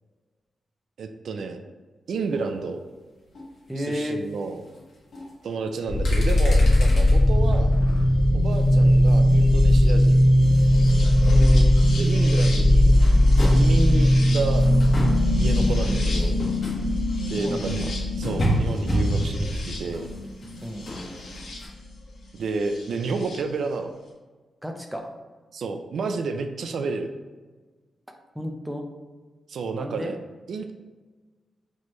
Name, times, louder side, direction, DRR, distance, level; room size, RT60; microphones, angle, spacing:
voice 1, 1.0-1.6 2.1-2.8 3.8-4.6 5.4-7.7 8.3-10.2 12.0-13.0 13.4-14.7 15.3-16.4 17.3-17.9 18.2-20.1 22.3-23.9 25.5-27.1 29.5-30.2 30.5-30.7, right 4 dB, 75° right, 6 dB, 0.3 m, -30 dB
sound 1, 2.3-2.5 3.4-3.5 3.9-4.1 4.8-4.9 5.1-5.3 5.8-7.2 7.5-8.0 8.5-11.0 11.2-21.7, equal, 55° left, 1.1 m, -32 dB
voice 2, 3.7-4.2 11.2-11.7 13.6-13.8 15.6-15.9 17.4-17.9 20.6-20.9 24.6-25.1 28.3-28.9 29.7-30.1, equal, 5° right, 3 dB, 0.5 m, -32 dB
sound 2, 5.9-21.6 22.8-23.4, left 1 dB, 85° left, 0.9 m, -19 dB
4.2 x 3.0 x 3.0 m, 1.4 s
wide cardioid pair, 110°, 0 cm